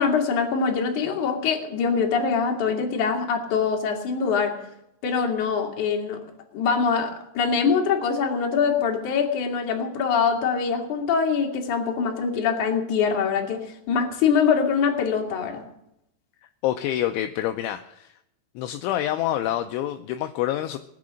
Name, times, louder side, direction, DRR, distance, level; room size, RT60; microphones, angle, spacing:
voice 1, 0.0-4.6 5.0-6.2 6.5-15.6, left 6 dB, 50° left, 1 dB, 2.9 m, -23 dB
voice 2, 16.4-18.2 18.6-20.8, left 12 dB, 80° left, 7 dB, 2.8 m, -27 dB
19.5 x 9.7 x 6.4 m, 0.80 s
omnidirectional pair, 6.0 m